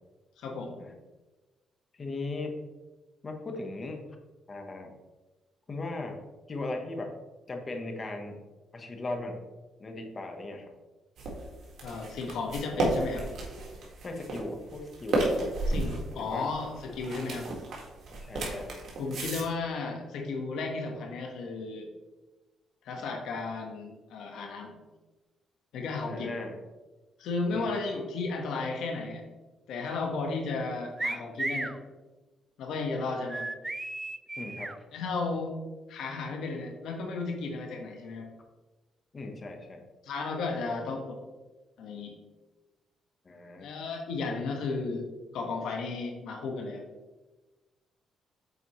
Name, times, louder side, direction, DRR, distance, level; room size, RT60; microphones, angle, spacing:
voice 1, 0.4-0.8 11.8-13.2 15.7-17.5 19.0-21.9 22.8-24.8 25.7-26.3 27.2-29.2 29.7-31.7 32.6-33.5 34.9-35.6 35.9-38.3 40.0-41.2 41.8-42.1 43.6-46.8, left 3 dB, 80° left, 2 dB, 1.2 m, -34 dB
voice 2, 1.9-2.6 3.2-4.0 4.5-5.0 5.7-6.2 6.5-7.1 7.5-8.4 8.7-9.4 9.8-10.7 14.0-15.3 16.1-16.5 18.2-18.7 26.1-26.6 27.5-27.8 34.3-34.8 39.1-39.8 43.2-43.7, left 2 dB, 35° left, 4 dB, 1.1 m, -38 dB
sound 1, 11.2-19.4, right 2 dB, 60° right, 1.8 m, -33 dB
sound 2, 31.0-31.8 33.3-34.8, right 2 dB, 20° right, 0.3 m, -34 dB
8.1 x 4.2 x 3.1 m, 1.2 s
cardioid pair, 90°, 0 cm